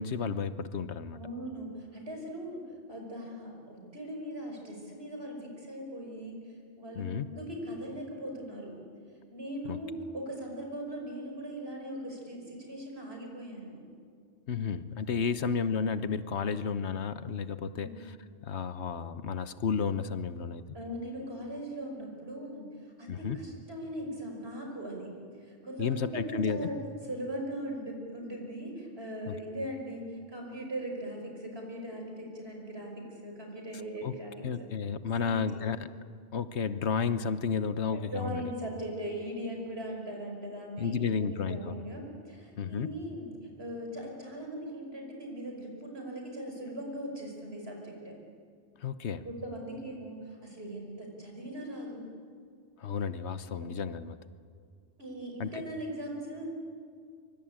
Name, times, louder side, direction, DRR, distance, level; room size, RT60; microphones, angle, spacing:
voice 1, 0.0-1.2 7.0-7.3 9.7-9.8 14.5-18.1 18.4-20.6 23.1-23.4 25.8-26.7 29.3-29.4 34.0-34.1 34.4-35.9 36.3-38.4 40.8-41.7 42.6-42.9 48.8-49.2 52.8-54.2 55.4-55.5, left 6 dB, 75° left, 12 dB, 1.2 m, -32 dB
voice 2, 1.1-8.7 9.3-13.8 15.3-15.4 17.7-18.0 20.7-26.7 27.0-34.7 35.2-35.6 37.9-48.2 49.2-52.1 53.4-53.7 55.0-56.5, right 1 dB, 60° right, 1 dB, 5.9 m, -40 dB
24.0 x 24.0 x 8.9 m, 2.2 s
omnidirectional pair, 1.2 m